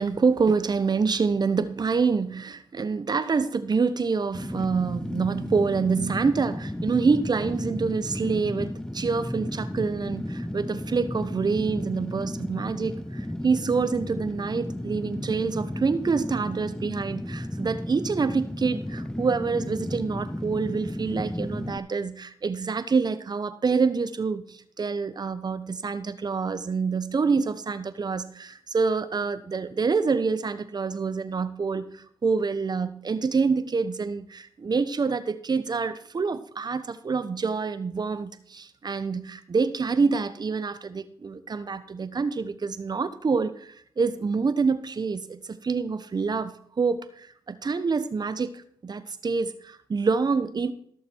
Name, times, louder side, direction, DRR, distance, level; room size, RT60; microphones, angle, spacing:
voice 1, 0.0-48.5 48.8-50.7, right 4 dB, 45° right, 13 dB, 1.1 m, -26 dB
Fire, 4.3-21.8, left 1 dB, 5° left, 0.6 m, -33 dB
16.0 x 6.7 x 4.6 m, 0.63 s
cardioid pair, 60°, 10 cm